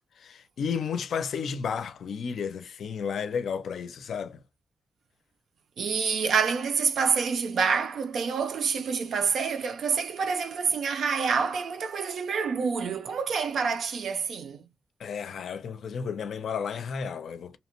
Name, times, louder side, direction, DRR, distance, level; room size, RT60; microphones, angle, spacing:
voice 1, 0.2-4.4 15.0-17.6, left 6 dB, 80° left, 0.5 m, -32 dB
voice 2, 5.8-14.7, right 6 dB, 80° right, 0.5 m, -27 dB
2.8 x 2.1 x 2.9 m
wide cardioid pair, 180°, 0 cm